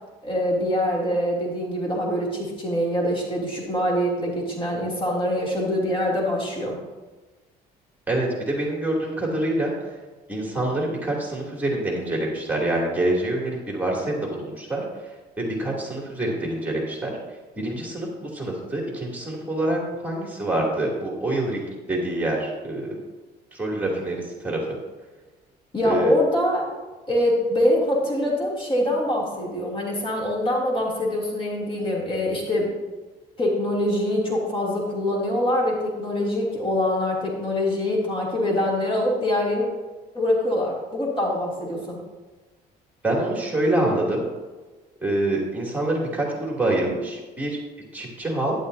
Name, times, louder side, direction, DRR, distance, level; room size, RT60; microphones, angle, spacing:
voice 1, 0.2-6.8 25.7-26.7 27.1-32.7 33.4-39.7 40.1-42.0, left 1 dB, 30° left, -3 dB, 2.8 m, -24 dB
voice 2, 8.1-9.9 10.3-14.8 15.4-17.1 17.6-21.6 21.9-23.0 23.5-24.6 25.8-26.1 43.0-44.2 45.0-47.6 47.9-48.5, right 1 dB, 10° right, -2 dB, 2.8 m, -26 dB
11.5 x 10.5 x 2.7 m, 1.2 s
cardioid pair, 110°, 17 cm